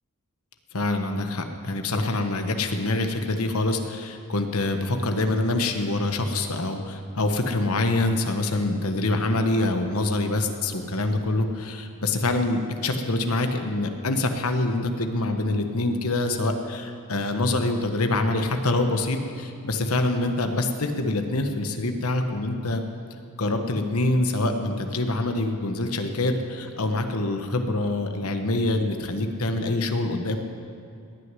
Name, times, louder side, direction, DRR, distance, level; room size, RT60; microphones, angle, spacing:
voice 1, 0.7-22.8 23.4-30.4, left 2 dB, 75° left, 6 dB, 1.3 m, -25 dB
18.5 x 6.6 x 9.8 m, 2.5 s
head